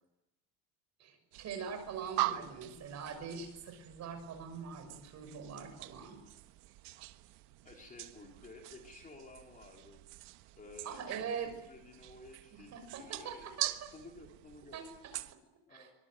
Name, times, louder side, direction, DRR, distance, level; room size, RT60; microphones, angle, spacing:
voice 1, 1.0-6.2 10.8-11.5 12.5-13.9 14.7-14.8 15.7-15.9, right 6 dB, 40° right, 6 dB, 6.3 m, -43 dB
sound 1, 1.3-15.4, right 17 dB, 70° right, 1.4 m, -43 dB
voice 2, 2.0-2.5 7.6-10.0 10.5-13.5 13.9-14.8 15.7-15.9, left 2 dB, 20° left, 1 dB, 4.1 m, -54 dB
24.5 x 23.0 x 9.4 m, 0.90 s
cardioid pair, 175°, 42 cm